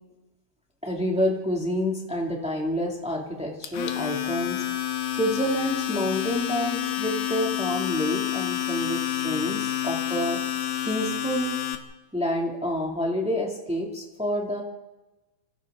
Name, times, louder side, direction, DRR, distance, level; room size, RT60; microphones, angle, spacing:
voice 1, 0.8-4.6 5.2-10.4 10.8-11.6 12.1-14.6, equal, 10° right, -1 dB, 0.3 m, -28 dB
Domestic sounds home sounds, 3.6-11.8, left 12 dB, 70° left, 2.5 m, -29 dB
28.0 x 27.0 x 3.8 m, 1.1 s
omnidirectional pair, 5.2 m